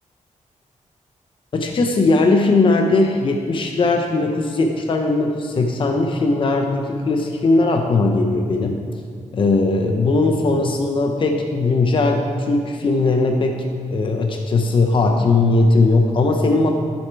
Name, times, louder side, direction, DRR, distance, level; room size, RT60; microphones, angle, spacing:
voice 1, 1.5-8.8 9.3-13.6 13.9-16.7, left 3 dB, 40° left, 2 dB, 0.7 m, -18 dB
12.5 x 7.2 x 4.6 m, 2.1 s
wide cardioid pair, 160°, 13 cm